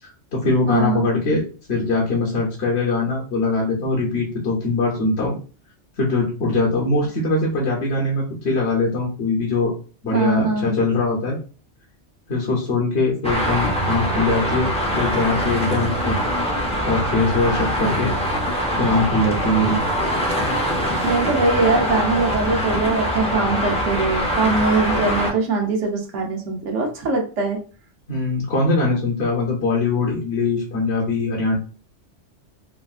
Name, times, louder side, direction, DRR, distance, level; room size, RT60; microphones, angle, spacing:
voice 1, 0.0-5.3 6.0-9.7 10.0-11.4 12.3-16.2 16.8-18.1 18.8-19.8 28.1-31.5, left 3 dB, 65° left, -5 dB, 1.1 m, -22 dB
voice 2, 0.7-1.1 10.1-10.8 21.0-27.6, right 3 dB, 85° right, 1 dB, 1.1 m, -22 dB
Traffic noise roadway noise, 13.2-25.3, equal, 10° left, 0.3 m, -23 dB
3.4 x 2.4 x 2.4 m, 0.37 s
omnidirectional pair, 1.2 m